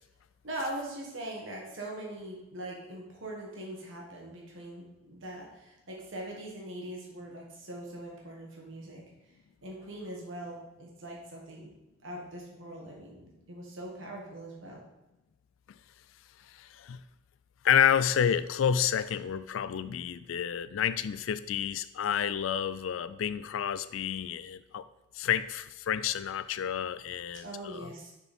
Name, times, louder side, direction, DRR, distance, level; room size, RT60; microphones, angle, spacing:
voice 1, 0.4-9.0 9.6-11.7 12.0-14.8 27.4-28.1, right 1 dB, 85° right, 1.5 m, -41 dB
voice 2, 16.5-17.0 17.6-24.9 25.1-27.9, left 8 dB, 90° left, 0.3 m, -29 dB
6.6 x 4.5 x 4.3 m
head